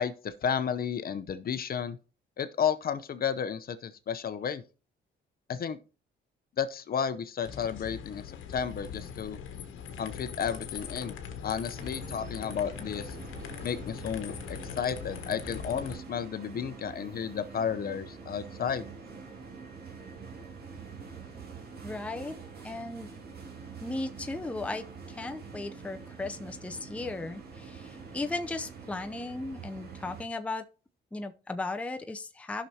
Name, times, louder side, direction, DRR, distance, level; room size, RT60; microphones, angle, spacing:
voice 1, 0.0-2.0 2.4-4.6 5.5-5.8 6.6-8.2 8.5-9.4 10.0-11.2 11.4-13.1 13.6-18.9, left 7 dB, 50° left, 0.7 m, -32 dB
sound 1, 7.4-16.0, left 7 dB, 80° left, 1.1 m, -41 dB
sound 2, 11.8-30.2, right 5 dB, 50° right, 2.4 m, -45 dB
voice 2, 21.8-22.3 22.6-23.1 23.8-30.6 31.1-32.7, left 2 dB, 5° left, 0.6 m, -36 dB
14.5 x 6.0 x 2.8 m
cardioid pair, 90°, 20 cm